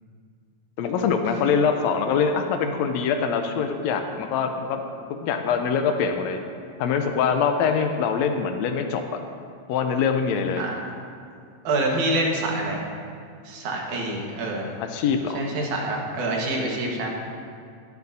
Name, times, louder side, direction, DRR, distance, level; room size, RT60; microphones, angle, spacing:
voice 1, 0.8-4.8 5.1-6.4 6.8-9.2 9.7-10.6 14.8-15.4, left 6 dB, 85° left, 5 dB, 1.6 m, -24 dB
voice 2, 11.6-12.8 13.4-14.7 15.3-17.1, right 2 dB, 65° right, -1 dB, 2.8 m, -26 dB
20.5 x 9.3 x 2.7 m, 2.2 s
omnidirectional pair, 3.8 m